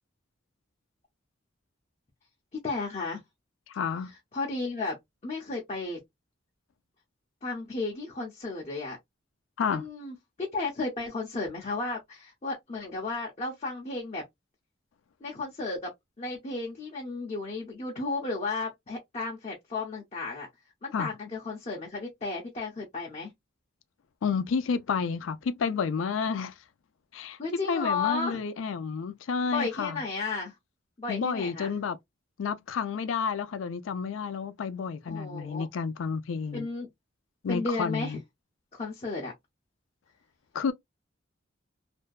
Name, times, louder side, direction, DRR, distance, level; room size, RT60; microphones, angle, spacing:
voice 1, 2.6-3.2 4.3-5.0 5.2-6.0 7.4-9.0 9.7-14.2 15.2-15.9 16.2-20.5 20.8-23.3 27.4-28.4 29.5-30.5 31.0-31.8 35.1-35.7 36.5-36.9 37.5-38.2 38.7-39.3, left 3 dB, 35° left, 0.6 m, -33 dB
voice 2, 3.7-4.1 9.6-9.9 20.9-21.1 24.2-26.5 27.1-30.0 31.1-32.0 32.4-36.7 37.4-38.2 40.5-40.7, left 5 dB, 85° left, 0.4 m, -30 dB
2.5 x 2.2 x 2.2 m
head